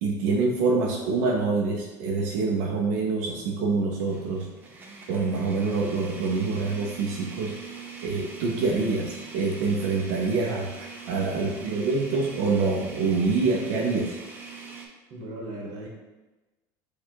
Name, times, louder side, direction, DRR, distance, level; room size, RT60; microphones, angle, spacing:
voice 1, 0.0-4.5 5.1-7.5 8.0-14.2, right 4 dB, 80° right, -1 dB, 0.7 m, -26 dB
sound 1, 1.3-1.4 1.9-2.0 4.0-14.9, right 5 dB, 20° right, 0.6 m, -42 dB
voice 2, 11.3-11.8 15.1-15.9, right 1 dB, 45° right, -1 dB, 1.1 m, -38 dB
4.6 x 2.4 x 4.5 m, 1.1 s
cardioid pair, 165°, 9 cm